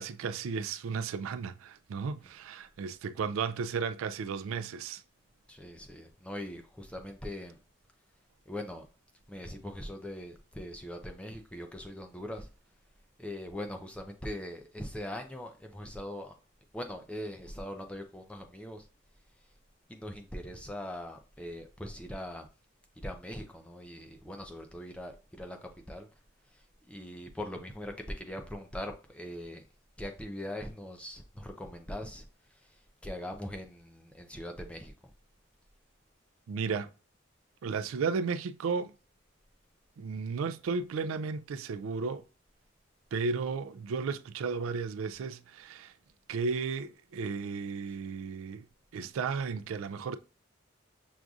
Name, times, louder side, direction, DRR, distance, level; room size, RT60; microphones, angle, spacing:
voice 1, 0.0-5.0 36.5-36.9 37.6-38.9 40.0-42.2 43.1-45.9 46.3-48.7 48.9-50.2, right 5 dB, 90° right, 0.3 m, -34 dB
voice 2, 5.5-7.6 8.5-8.9 9.3-12.5 13.2-16.4 16.7-18.9 19.9-22.5 23.0-26.1 26.5-29.6 30.0-34.9, left 1 dB, 5° left, 0.4 m, -41 dB
6.1 x 2.6 x 2.3 m
head